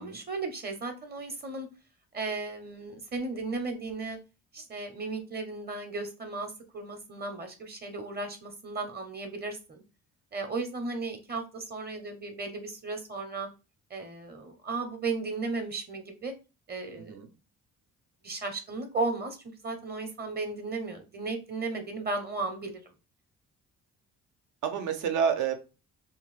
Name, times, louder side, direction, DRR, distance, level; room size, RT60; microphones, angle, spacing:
voice 1, 0.0-1.7 2.1-4.2 4.5-9.8 10.3-13.5 13.9-16.3 16.7-17.2 18.2-22.8, right 3 dB, 35° right, 6 dB, 0.8 m, -35 dB
voice 2, 24.6-25.5, right 7 dB, 80° right, 6 dB, 0.8 m, -29 dB
2.8 x 2.3 x 3.1 m, 0.30 s
cardioid pair, 90°, 30 cm